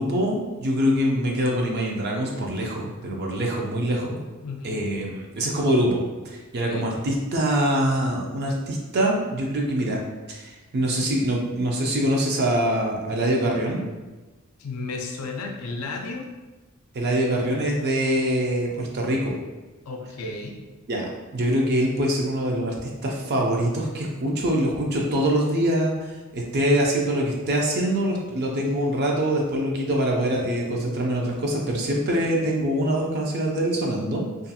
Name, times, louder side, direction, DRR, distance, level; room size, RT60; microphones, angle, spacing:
voice 1, 0.0-4.2 4.6-6.0 6.2-10.0 10.3-13.8 16.9-19.4 20.9-21.1 21.3-34.2, right 1 dB, 50° right, -1 dB, 0.4 m, -24 dB
voice 2, 4.4-4.8 6.7-6.9 14.6-16.3 19.9-20.6, left 3 dB, 85° left, 2 dB, 0.4 m, -33 dB
2.4 x 2.3 x 2.7 m, 1.2 s
head